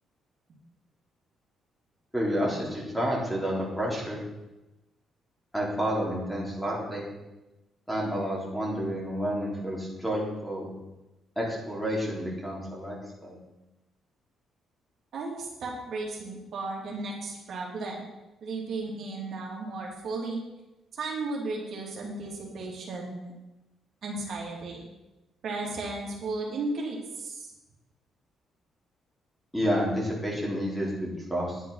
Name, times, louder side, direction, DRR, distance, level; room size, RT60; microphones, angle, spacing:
voice 1, 2.1-4.2 5.5-7.0 7.9-10.7 11.4-13.0 13.2-13.4 29.5-31.6, equal, ahead, -3 dB, 3.9 m, -30 dB
voice 2, 15.1-18.1 18.4-20.4 20.9-23.2 24.0-24.8 25.4-27.5, right 3 dB, 65° right, -2 dB, 3.0 m, -34 dB
10.5 x 8.3 x 5.8 m, 1.0 s
cardioid pair, 90°, 0 cm